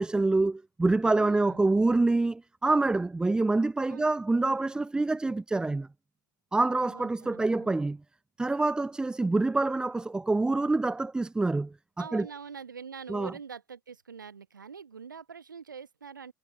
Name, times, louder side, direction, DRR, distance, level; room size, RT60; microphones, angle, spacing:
voice 1, 0.0-5.9 6.5-8.0 8.4-12.3 13.1-13.3, right 2 dB, 10° right, 0.7 m, -26 dB
voice 2, 1.0-1.6 3.9-4.1 6.7-7.8 12.0-16.3, right 6 dB, 80° right, 7.3 m, -45 dB
figure-of-eight pair, 85°, 10 cm